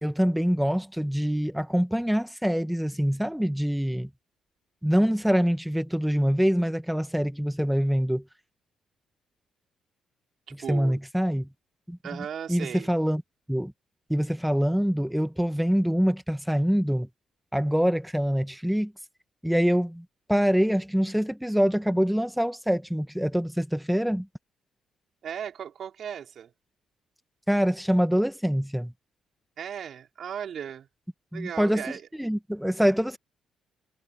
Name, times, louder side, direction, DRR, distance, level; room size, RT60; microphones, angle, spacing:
voice 1, 0.0-4.1 4.8-8.2 10.7-11.5 11.9-12.0 12.5-13.2 13.5-13.7 14.1-17.1 17.5-18.9 19.4-24.3 27.5-28.9 31.3-31.8 32.2-33.2, equal, ahead, 1.6 m, -25 dB
voice 2, 10.5-11.0 12.0-12.9 25.2-26.5 29.6-30.9 31.3-32.0, right 8 dB, 60° right, 4.8 m, -36 dB
cardioid pair, 90°, 0 cm